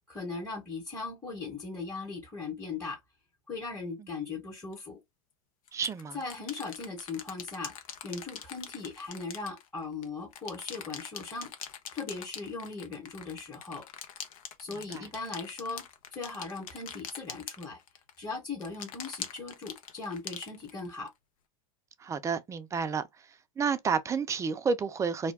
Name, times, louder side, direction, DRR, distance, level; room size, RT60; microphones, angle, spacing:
voice 1, 0.0-3.0 3.5-5.0 6.1-7.7 8.0-11.5 11.9-13.8 14.6-15.8 16.1-17.8 18.2-21.1, left 4 dB, 10° left, 1.0 m, -38 dB
sound 1, 4.7-4.8 5.7-10.1 10.3-18.2 18.6-21.1, left 8 dB, 80° left, 0.7 m, -43 dB
voice 2, 5.7-6.2 14.9-15.0 22.0-23.0 23.6-25.3, right 5 dB, 15° right, 0.4 m, -30 dB
2.3 x 2.2 x 3.4 m
hypercardioid pair, 115°, 18 cm